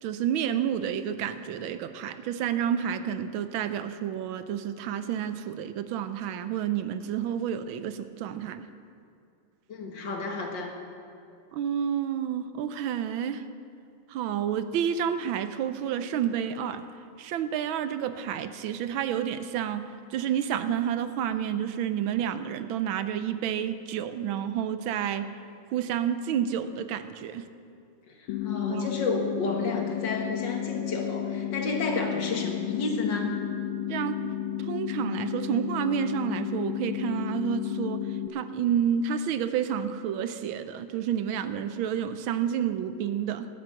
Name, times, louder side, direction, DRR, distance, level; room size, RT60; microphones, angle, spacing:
voice 1, 0.0-8.7 11.5-13.4 14.1-16.8 17.2-25.3 25.7-27.4 28.6-28.9 33.9-34.1 34.6-43.5, right 9 dB, 80° right, 11 dB, 1.4 m, -30 dB
voice 2, 9.7-10.7 28.1-33.3, left 3 dB, 65° left, 2 dB, 2.1 m, -31 dB
sound 1, 28.3-38.3, left 10 dB, 80° left, 1.5 m, -32 dB
13.0 x 9.7 x 7.8 m, 2.5 s
omnidirectional pair, 2.3 m